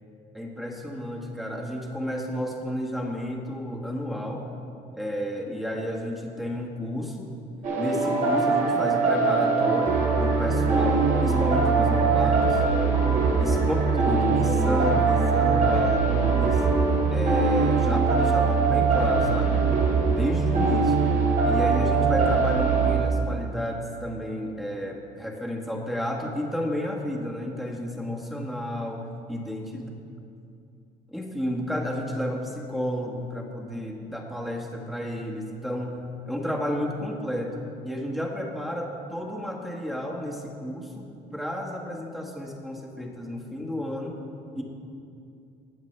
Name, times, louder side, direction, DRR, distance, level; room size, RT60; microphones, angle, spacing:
voice 1, 0.3-4.5 4.9-7.3 7.8-12.6 13.4-13.7 14.1-16.6 17.1-19.6 20.1-21.0 21.4-29.9 31.1-36.0 36.3-41.0 41.3-44.2 44.5-44.6, equal, ahead, -1 dB, 1.5 m, -31 dB
sound 1, 7.6-23.0, right 4 dB, 50° right, 2.4 m, -22 dB
18.5 x 7.4 x 3.3 m, 2.5 s
cardioid pair, 110°, 17 cm